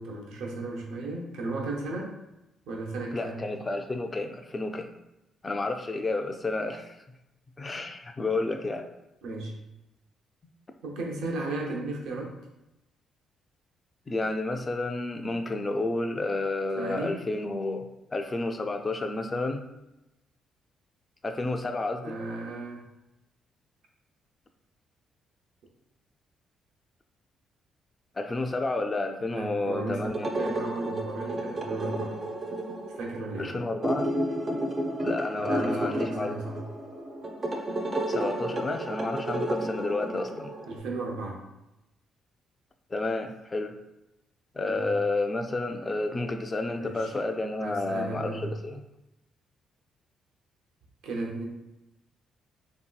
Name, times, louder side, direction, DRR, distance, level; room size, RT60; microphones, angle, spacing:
voice 1, 0.0-2.2 2.7-3.5 9.2-9.6 10.8-12.4 16.7-17.3 22.0-22.8 29.3-32.2 32.9-33.6 35.3-36.6 40.7-41.4 44.6-45.0 46.8-47.1 47.6-48.5 51.0-51.5, right 2 dB, 85° right, -1 dB, 0.7 m, -35 dB
voice 2, 3.1-4.9 5.4-7.0 7.6-8.9 14.1-17.9 18.1-19.6 21.2-22.2 28.2-30.3 33.4-34.1 35.0-36.3 38.1-40.5 42.9-43.7 44.5-48.8, left 2 dB, 25° left, 6 dB, 0.3 m, -30 dB
sound 1, 30.0-40.8, right 1 dB, 35° right, 0.4 m, -32 dB
3.1 x 2.7 x 2.2 m, 0.92 s
cardioid pair, 90°, 0 cm